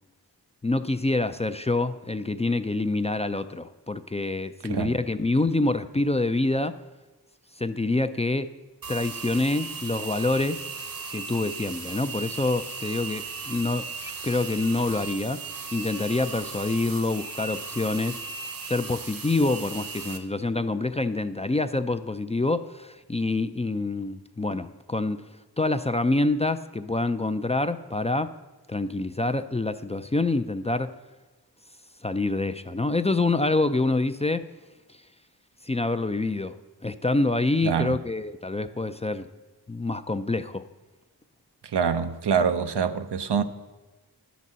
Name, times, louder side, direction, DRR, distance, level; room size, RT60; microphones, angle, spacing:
voice 1, 0.6-6.8 7.6-8.5 8.9-10.6 11.1-15.4 15.7-18.2 18.7-25.2 25.6-28.3 28.7-30.9 32.0-34.5 35.6-36.5 36.8-39.3 39.7-40.6, left 2 dB, 15° left, 0.3 m, -26 dB
sound 1, 8.8-20.2, right 4 dB, 55° right, 1.0 m, -37 dB
voice 2, 37.6-38.0 41.7-43.4, right 6 dB, 85° right, 0.6 m, -25 dB
10.5 x 4.1 x 7.4 m
wide cardioid pair, 45°, 40 cm